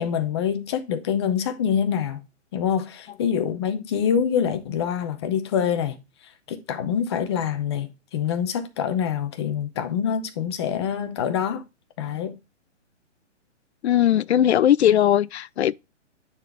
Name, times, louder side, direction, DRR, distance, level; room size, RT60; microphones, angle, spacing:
voice 1, 0.0-2.2 2.5-6.0 6.5-11.6 12.0-12.4, left 8 dB, 20° left, 0.7 m, -25 dB
voice 2, 13.8-15.7, left 11 dB, 60° left, 0.5 m, -19 dB
9.5 x 4.1 x 3.3 m
hypercardioid pair, 155°, 37 cm